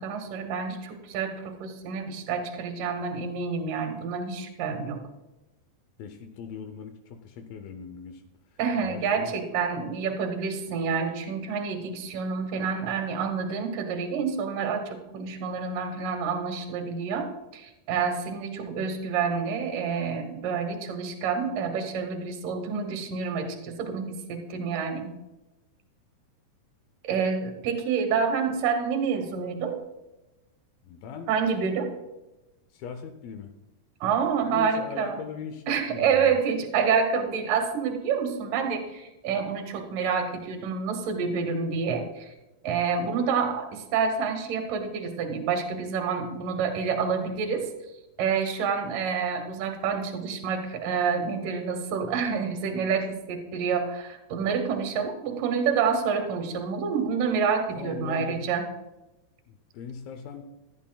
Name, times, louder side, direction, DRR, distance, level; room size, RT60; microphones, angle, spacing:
voice 1, 0.0-5.0 8.6-25.1 27.0-29.8 31.3-31.9 34.0-35.2 35.7-42.3 42.6-47.7 48.2-58.6, right 6 dB, 65° right, 5 dB, 2.6 m, -28 dB
voice 2, 6.0-8.2 8.8-9.3 30.8-31.3 32.7-33.5 34.5-36.4 57.8-58.4 59.5-60.4, left 6 dB, 75° left, 7 dB, 2.3 m, -39 dB
16.0 x 12.5 x 2.3 m, 1.0 s
omnidirectional pair, 4.7 m